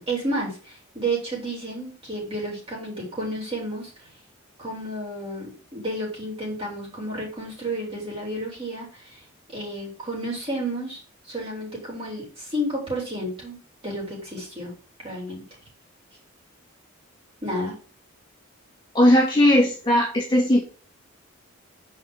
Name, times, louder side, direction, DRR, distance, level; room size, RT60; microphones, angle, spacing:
voice 1, 0.0-4.1 4.6-9.2 9.5-13.6 13.8-14.7 15.0-15.4 17.4-17.7, right 1 dB, 25° right, -3 dB, 4.1 m, -31 dB
voice 2, 18.9-20.6, left 1 dB, 20° left, -4 dB, 2.0 m, -18 dB
6.5 x 4.9 x 6.3 m, 0.36 s
head